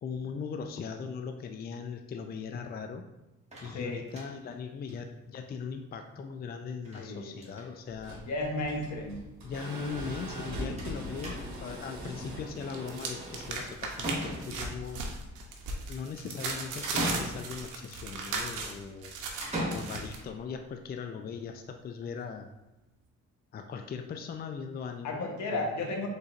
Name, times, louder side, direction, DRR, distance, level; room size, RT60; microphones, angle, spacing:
voice 1, 0.0-3.1 3.6-8.2 9.4-15.0 15.9-19.1 19.7-22.5 23.5-25.8, left 6 dB, 35° left, 6 dB, 0.4 m, -39 dB
sound 1, 3.5-4.5 4.9-5.0 5.3-5.4 5.6-5.7 6.9-7.1 7.3-7.7 8.6-8.7 8.9-9.0 10.8-11.0 11.2-11.7 13.5-13.6 14.0-14.8 16.8-17.7 19.4-20.3, equal, 20° right, 1.5 m, -37 dB
voice 2, 3.7-4.0 7.0-7.3 8.2-9.2 25.0-26.1, left 2 dB, 70° left, 1 dB, 1.0 m, -33 dB
sound 2, 7.9-15.8, equal, 65° right, 1.5 m, -42 dB
sound 3, 11.2-12.0 12.3-20.2, right 4 dB, 90° right, 0.8 m, -37 dB
5.0 x 4.0 x 2.5 m, 1.0 s
cardioid pair, 90°, 30 cm